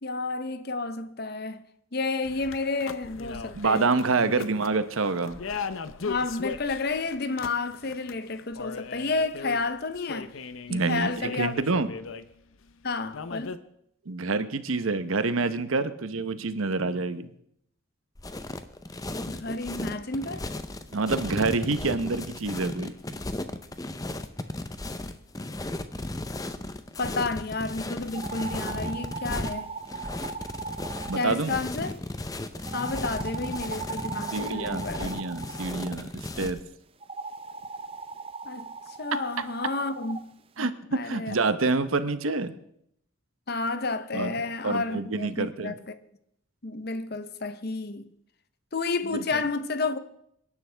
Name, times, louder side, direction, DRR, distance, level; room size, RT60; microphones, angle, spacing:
voice 1, 0.0-1.6 1.9-3.9 4.2-4.5 6.0-10.4 10.7-11.5 12.8-13.6 19.3-20.5 27.0-29.7 31.2-32.0 32.7-35.2 38.4-38.7 39.0-41.4 43.5-46.0 46.6-48.1 48.7-50.0, left 3 dB, 50° left, 0.8 m, -31 dB
sound 1, 2.2-12.7 13.1-13.6, left 5 dB, 80° left, 0.7 m, -39 dB
voice 2, 3.5-5.4 10.7-11.9 14.1-17.3 20.9-22.9 31.1-31.6 34.3-36.6 39.4-39.5 40.6-42.5 44.1-44.3 44.6-45.7 49.3-49.4, right 3 dB, 85° right, 0.9 m, -27 dB
sound 2, 18.2-36.6, left 1 dB, 15° left, 0.6 m, -35 dB
sound 3, 28.1-32.0 32.6-35.9 37.0-40.2, right 5 dB, 25° right, 0.5 m, -39 dB
26.0 x 11.0 x 3.4 m
head